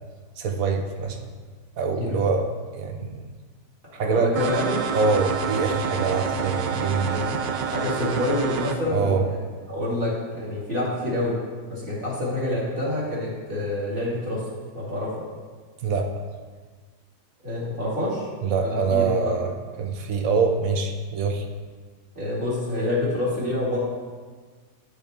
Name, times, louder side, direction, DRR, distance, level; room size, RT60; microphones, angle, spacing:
voice 1, 0.4-1.2 1.8-2.5 2.7-3.2 3.9-4.3 4.9-7.3 8.9-9.2 15.8-16.1 18.4-19.5 19.8-21.5, right 4 dB, 60° right, 5 dB, 1.0 m, -24 dB
voice 2, 4.0-4.8 7.1-9.4 9.7-11.4 11.7-14.4 14.7-15.1 17.4-18.3 18.6-19.3 22.1-23.8, left 1 dB, 30° right, -7 dB, 2.6 m, -27 dB
sound 1, 4.4-8.8, right 6 dB, 85° right, 1.3 m, -28 dB
10.5 x 6.4 x 3.3 m, 1.5 s
omnidirectional pair, 1.9 m